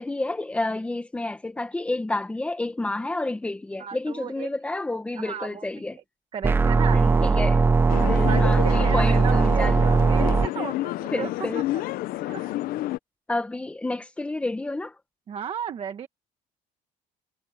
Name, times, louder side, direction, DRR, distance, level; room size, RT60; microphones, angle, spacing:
voice 1, 0.0-6.0 6.9-7.6 8.0-9.8 10.6-10.7 11.1-11.6 13.3-14.9, left 2 dB, 10° left, 1.3 m, -30 dB
voice 2, 3.8-4.5 5.2-5.8 6.3-7.1 8.0-11.3 11.7-11.8 12.3-12.6 15.3-16.1, right 8 dB, 35° right, 1.2 m, -34 dB
sound 1, 6.4-10.5, right 4 dB, 15° right, 0.5 m, -19 dB
sound 2, 7.9-13.0, left 16 dB, 70° left, 0.7 m, -30 dB
cardioid pair, 175°, 16 cm